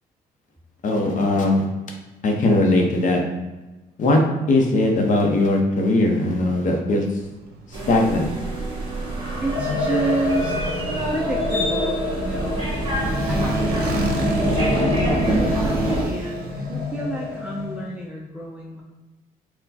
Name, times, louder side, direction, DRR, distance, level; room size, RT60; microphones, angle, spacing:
voice 1, 0.8-1.7 2.2-3.2 4.0-4.2 4.5-7.0 7.7-8.3, left 2 dB, 55° left, 1 dB, 0.7 m, -19 dB
Motorcycle, 7.2-17.8, right 2 dB, 75° right, 0.7 m, -36 dB
sound 1, 7.7-16.1, right 1 dB, 35° right, 1.4 m, -25 dB
voice 2, 9.4-18.8, right 2 dB, 5° right, -3 dB, 0.5 m, -30 dB
sound 2, 9.5-17.8, left 4 dB, 90° left, 0.6 m, -29 dB
4.3 x 2.2 x 4.1 m, 1.1 s
cardioid pair, 110°, 16 cm